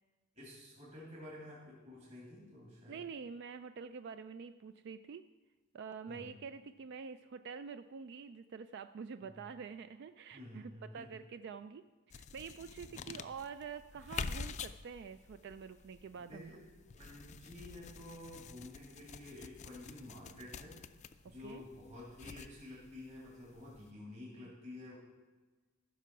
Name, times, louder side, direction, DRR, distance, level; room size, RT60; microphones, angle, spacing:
voice 1, 0.3-3.0 6.1-6.4 9.2-9.5 10.3-11.1 12.9-13.2 16.1-16.6 16.9-20.7 21.2-25.0, left 1 dB, 35° right, -6 dB, 2.9 m, -51 dB
voice 2, 2.9-5.2 5.7-16.6 21.4-21.6 24.4-24.5, right 6 dB, 55° right, 11 dB, 0.3 m, -47 dB
sound 1, 12.1-23.9, left 5 dB, 35° left, 0.4 m, -48 dB
14.5 x 6.0 x 5.9 m, 1.3 s
head